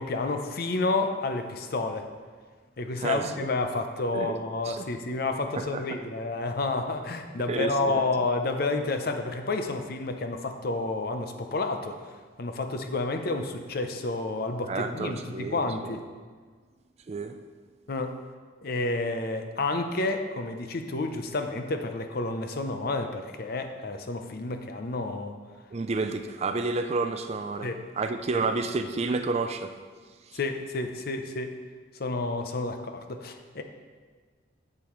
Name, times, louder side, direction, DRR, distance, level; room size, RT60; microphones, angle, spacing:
voice 1, 0.0-2.0 2.8-16.0 17.9-18.2 18.6-25.4 27.6-27.7 28.3-28.4 30.3-31.6 32.0-33.6, left 2 dB, 55° left, 0.6 m, -30 dB
voice 2, 3.0-3.3 4.1-4.4 4.6-4.8 5.5-5.8 7.5-8.0 14.7-16.0 17.1-17.4 25.7-29.7 30.3-30.4, right 3 dB, 35° right, 0.4 m, -30 dB
8.2 x 7.6 x 3.1 m
head